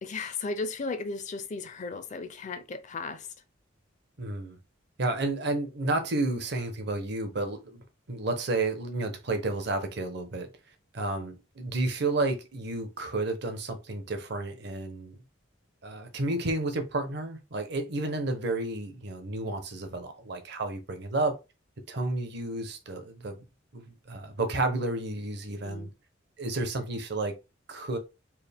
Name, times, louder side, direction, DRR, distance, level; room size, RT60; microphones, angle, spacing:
voice 1, 0.0-3.3 25.6-25.9, left 3 dB, 40° left, 0.4 m, -35 dB
voice 2, 4.2-4.6 5.0-10.5 10.9-15.2 15.8-21.4 21.9-23.4 23.7-25.9 26.4-27.4 27.7-28.0, right 2 dB, 60° right, 0.8 m, -31 dB
4.5 x 2.1 x 3.4 m
head